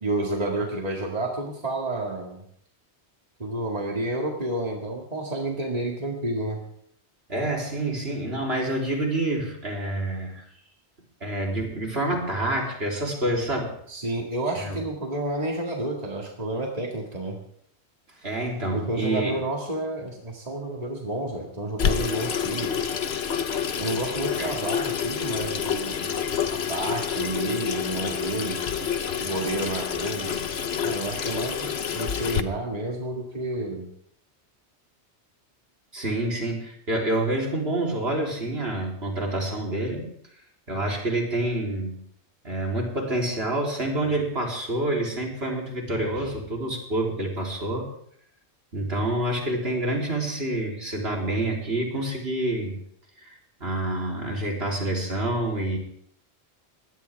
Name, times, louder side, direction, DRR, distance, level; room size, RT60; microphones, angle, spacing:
voice 1, 0.0-2.4 3.4-6.6 13.9-17.4 18.7-22.8 23.8-26.1 26.5-28.6 29.2-30.4 30.8-33.9, right 1 dB, 35° right, 0 dB, 2.1 m, -30 dB
voice 2, 7.3-10.4 11.2-13.7 14.6-14.8 18.2-19.3 24.4-24.5 35.9-40.1 40.7-41.9 42.4-47.9 48.7-52.8 53.2-55.8, right 1 dB, 65° right, -1 dB, 3.8 m, -27 dB
Water tap faucet / Sink (filling or washing), 21.8-32.4, left 7 dB, 65° left, 1.2 m, -28 dB
21.5 x 17.0 x 3.5 m, 0.66 s
omnidirectional pair, 1.1 m